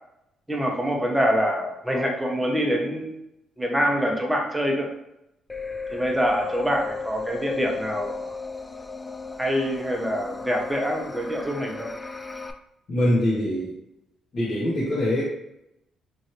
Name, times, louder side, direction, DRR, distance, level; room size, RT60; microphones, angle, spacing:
voice 1, 0.5-3.1 3.6-4.9 5.9-8.4 9.4-11.9, equal, 10° right, 0 dB, 0.7 m, -25 dB
sound 1, 5.5-12.5, left 4 dB, 15° left, 0.3 m, -35 dB
voice 2, 12.9-13.8 14.3-15.2, left 1 dB, 55° left, -8 dB, 1.0 m, -23 dB
3.1 x 2.5 x 2.9 m, 0.83 s
cardioid pair, 90°, 0 cm